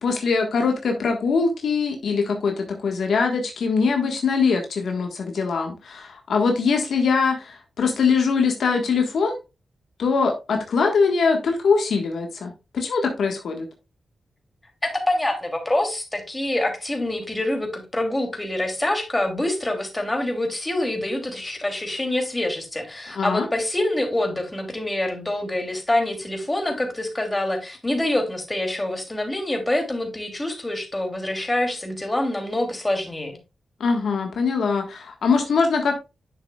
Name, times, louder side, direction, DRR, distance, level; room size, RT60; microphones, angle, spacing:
voice 1, 0.0-9.4 10.0-13.7 23.1-23.5 33.8-35.9, left 5 dB, 80° left, 3 dB, 1.5 m, -22 dB
voice 2, 14.8-33.4, left 1 dB, 20° left, 3 dB, 2.9 m, -26 dB
10.0 x 6.5 x 2.4 m, 0.26 s
cardioid pair, 65°, 0 cm